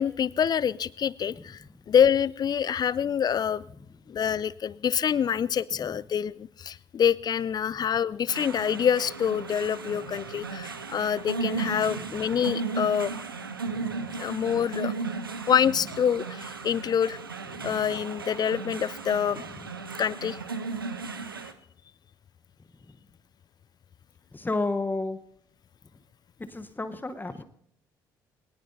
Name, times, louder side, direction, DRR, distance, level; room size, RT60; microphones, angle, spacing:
voice 1, 0.0-3.6 4.1-13.1 14.2-14.9 15.5-17.2 17.6-19.4 20.0-20.4, left 8 dB, 35° left, 22 dB, 0.5 m, -26 dB
sound 1, 8.3-21.5, right 4 dB, 90° right, 0.6 m, -35 dB
voice 2, 11.8-12.1 13.7-14.2 17.5-17.9 19.5-19.6 22.9-23.0 24.3-25.2 26.5-27.4, left 2 dB, 15° left, 10 dB, 1.0 m, -33 dB
21.5 x 18.5 x 2.7 m, 0.71 s
figure-of-eight pair, 50°, 11 cm